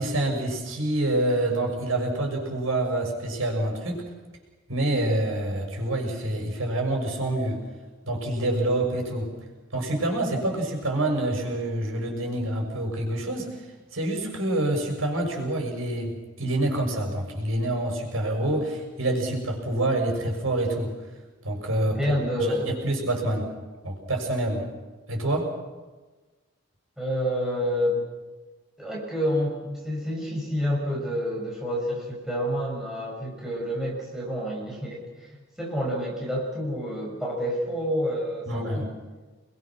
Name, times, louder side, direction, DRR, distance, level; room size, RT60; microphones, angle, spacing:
voice 1, 0.0-4.0 4.7-7.6 8.1-9.3 9.7-13.5 13.9-20.9 21.4-22.5 22.8-23.5 23.8-24.7 25.1-25.5 38.5-38.9, right 1 dB, 85° right, 1 dB, 6.4 m, -27 dB
voice 2, 21.8-22.8 27.0-28.1 28.8-35.3 35.6-38.9, equal, ahead, -3 dB, 6.8 m, -28 dB
29.0 x 22.0 x 6.2 m, 1.3 s
head